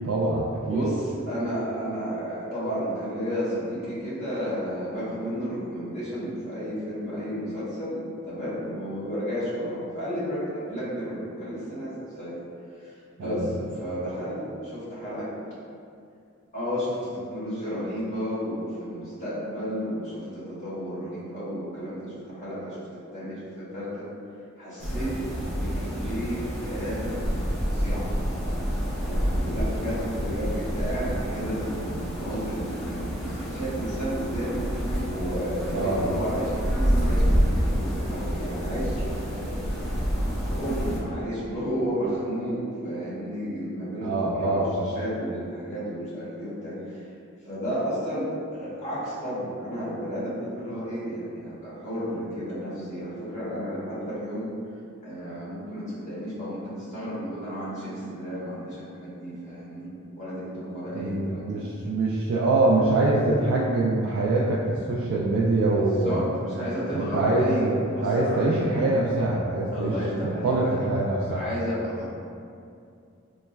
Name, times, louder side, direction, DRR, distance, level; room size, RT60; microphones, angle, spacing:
voice 1, 0.0-0.9 13.2-13.4 35.7-36.1 44.0-44.8 60.9-66.2 66.9-69.9 70.2-71.4, right 2 dB, 65° right, -5 dB, 0.3 m, -24 dB
voice 2, 0.7-12.3 13.2-15.3 16.5-24.1 24.6-25.1 25.6-27.2 27.6-28.1 29.0-34.6 35.0-39.6 40.2-47.0 47.4-54.5 55.0-61.6 66.0-68.7 69.7-70.8 71.3-72.1, equal, 35° left, -12 dB, 1.4 m, -32 dB
sound 1, 24.8-41.0, equal, ahead, 0.5 m, -28 dB
4.0 x 2.1 x 2.2 m, 2.4 s
head